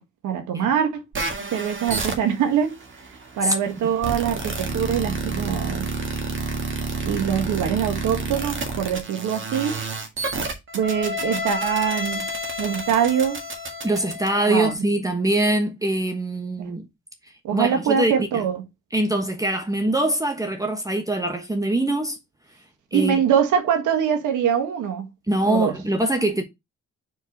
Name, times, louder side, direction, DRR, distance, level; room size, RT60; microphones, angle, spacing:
voice 1, 0.2-1.0 1.5-2.7 3.4-5.8 7.0-9.8 10.7-12.3 12.6-13.4 14.5-14.7 16.6-16.7 17.4-18.6 22.9-25.0 25.5-25.7, right 8 dB, 80° right, 1.6 m, -23 dB
sound 1, 1.1-14.7, right 2 dB, 40° right, 1.8 m, -30 dB
voice 2, 3.4-3.9 13.8-16.8 17.5-18.4 18.9-22.2 22.9-23.2 25.3-26.4, right 1 dB, 10° right, 1.2 m, -23 dB
4.6 x 4.5 x 4.6 m
cardioid pair, 90°, 30 cm